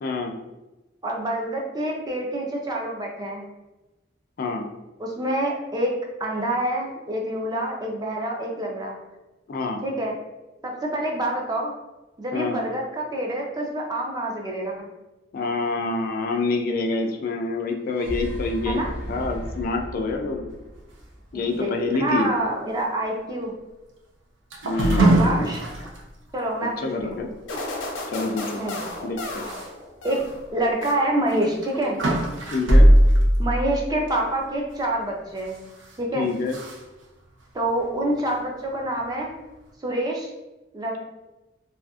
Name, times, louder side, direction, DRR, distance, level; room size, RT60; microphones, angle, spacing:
voice 1, 0.0-0.4 4.4-4.7 9.5-9.8 12.3-12.6 15.3-20.4 21.3-22.3 24.7-25.5 26.6-27.3 28.1-28.6 29.0-29.5 32.5-32.9 36.1-36.6, left 3 dB, 50° left, 3 dB, 0.3 m, -27 dB
voice 2, 1.0-3.5 5.0-8.9 9.8-10.2 10.6-11.7 12.2-14.9 18.7-18.9 21.3-23.5 24.9-25.6 26.3-27.2 28.6-28.8 30.0-30.2 30.5-32.0 33.4-35.6 36.0-36.3 37.5-39.3 39.8-40.3 40.7-41.0, right 1 dB, 20° right, 0 dB, 0.4 m, -27 dB
sound 1, 17.7-21.9, equal, 60° right, 0.8 m, -35 dB
sound 2, 24.5-26.0 26.5-26.6 27.0-27.1 28.7-28.9 29.4-29.7 30.2-30.3 31.3-34.5 35.4-36.0 36.5-36.8, right 1 dB, 85° right, 0.5 m, -20 dB
sound 3, 27.5-30.4 30.8-31.5, left 2 dB, 85° left, 0.6 m, -34 dB
2.6 x 2.4 x 2.3 m, 1.0 s
head